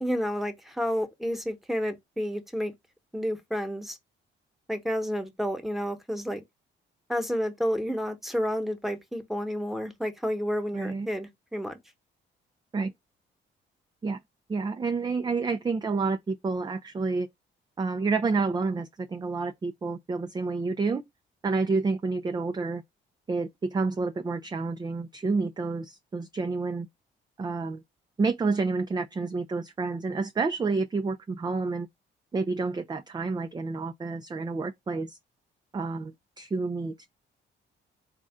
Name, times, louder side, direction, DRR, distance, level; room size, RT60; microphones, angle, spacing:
voice 1, 0.0-2.7 3.1-4.0 4.7-6.4 7.1-11.8, equal, ahead, 1.1 m, -30 dB
voice 2, 10.7-11.1 12.7-12.9 14.0-14.2 14.5-17.3 17.8-21.0 21.4-22.8 23.3-26.9 27.4-27.8 28.2-31.9 32.3-35.2 35.7-36.9, right 4 dB, 20° right, 0.4 m, -29 dB
4.1 x 2.5 x 3.5 m
cardioid pair, 90°, 20 cm